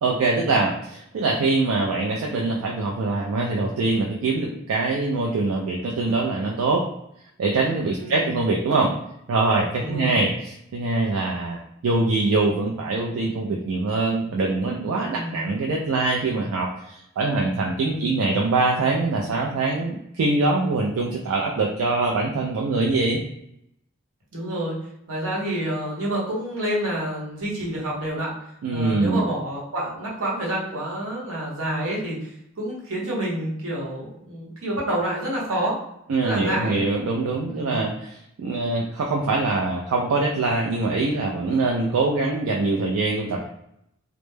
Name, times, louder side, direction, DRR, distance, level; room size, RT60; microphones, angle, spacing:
voice 1, 0.0-6.9 7.4-9.0 9.3-23.2 28.6-29.2 36.1-43.5, right 3 dB, 90° right, -1 dB, 0.4 m, -23 dB
voice 2, 8.0-8.3 9.8-10.2 15.1-15.5 17.8-18.1 24.3-24.8 25.1-28.3 28.7-32.3 32.6-35.8 36.2-36.8 37.5-37.8, right 1 dB, 75° right, -4 dB, 0.9 m, -28 dB
2.1 x 2.0 x 3.1 m, 0.78 s
head